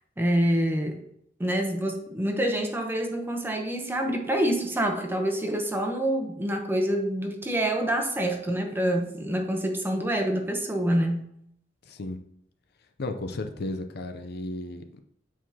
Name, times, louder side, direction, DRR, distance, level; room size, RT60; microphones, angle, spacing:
voice 1, 0.2-1.0 1.4-11.2, right 1 dB, 10° right, 3 dB, 0.8 m, -26 dB
voice 2, 11.8-12.2 13.0-15.0, left 2 dB, 60° left, 7 dB, 0.6 m, -34 dB
8.1 x 4.7 x 2.8 m, 0.74 s
head